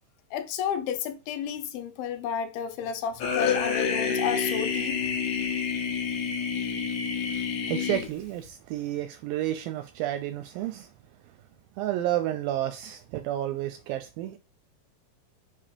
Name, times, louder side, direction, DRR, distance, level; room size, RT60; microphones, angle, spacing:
voice 1, 0.3-5.0, left 8 dB, 80° left, 2.5 m, -32 dB
sound 1, 3.2-8.5, left 6 dB, 60° left, 2.1 m, -28 dB
voice 2, 7.7-10.9 11.8-14.4, right 13 dB, 80° right, 2.1 m, -31 dB
6.8 x 2.9 x 5.1 m
omnidirectional pair, 4.5 m